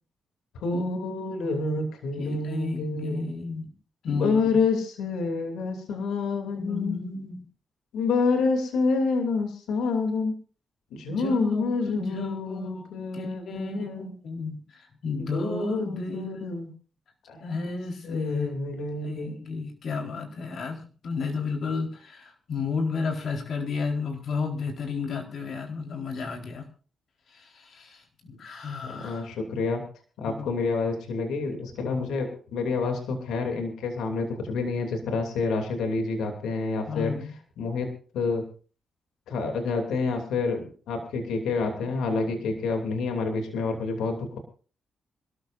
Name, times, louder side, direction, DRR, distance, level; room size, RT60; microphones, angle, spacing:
voice 1, 0.5-3.3 4.0-7.0 7.9-10.3 10.9-14.1 15.3-16.7 17.3-17.6 18.0-19.4 28.8-29.8 30.2-37.1 37.6-38.4 39.3-44.4, left 4 dB, 85° left, 4 dB, 2.9 m, -28 dB
voice 2, 1.4-1.8 2.2-3.7 4.0-4.6 6.5-7.4 11.1-12.9 13.1-16.4 17.4-18.6 19.0-26.7 27.3-29.3 30.2-30.5 31.9-32.1 36.9-37.3 42.4-42.5, left 4 dB, 70° left, 2 dB, 4.2 m, -32 dB
26.0 x 13.5 x 2.6 m, 0.39 s
supercardioid pair, 55°, 0 cm